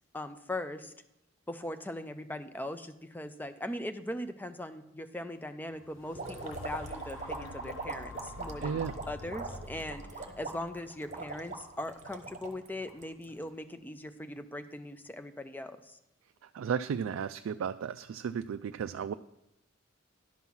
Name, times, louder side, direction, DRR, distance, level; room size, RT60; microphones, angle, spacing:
voice 1, 0.1-0.9 1.5-16.0, left 1 dB, 10° left, 10 dB, 0.5 m, -40 dB
sound 1, 5.7-13.8 14.3-14.4, left 2 dB, 65° left, 0.6 m, -48 dB
sound 2, 6.1-13.5, right 3 dB, 35° right, 1.1 m, -41 dB
voice 2, 8.6-8.9 16.4-19.1, right 7 dB, 75° right, 9 dB, 0.3 m, -34 dB
11.5 x 5.5 x 6.0 m, 0.87 s
head